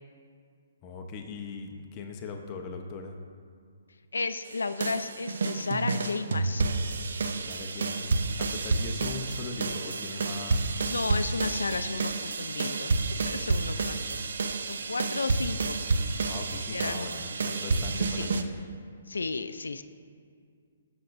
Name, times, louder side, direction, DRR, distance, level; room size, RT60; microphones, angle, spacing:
voice 1, 0.8-3.2 7.3-10.8 16.2-18.5, left 4 dB, 30° left, 3 dB, 0.8 m, -40 dB
voice 2, 4.1-6.6 10.8-12.9 13.3-14.2 14.7-15.8 16.7-17.1 18.1-18.3 19.1-19.8, left 3 dB, 90° left, 11 dB, 0.4 m, -33 dB
sound 1, 4.5-18.4, right 3 dB, 70° right, 0.7 m, -30 dB
17.0 x 7.1 x 2.6 m, 2.2 s
hypercardioid pair, 145°, 0 cm